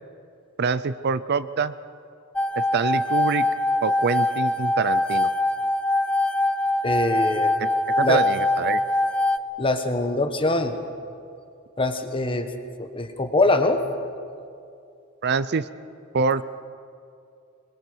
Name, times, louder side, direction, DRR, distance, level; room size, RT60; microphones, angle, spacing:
voice 1, 0.6-1.7 2.6-3.4 3.8-5.3 7.6-7.7 8.0-8.8 15.2-15.7 16.1-16.4, right 5 dB, 50° right, 15 dB, 0.5 m, -25 dB
sound 1, 2.4-9.4, left 2 dB, 5° left, 0.5 m, -23 dB
voice 2, 6.8-7.5 8.0-8.2 9.6-10.8 11.8-12.5 12.8-13.8, left 2 dB, 25° left, 7 dB, 1.3 m, -23 dB
26.0 x 21.0 x 6.2 m, 2.5 s
head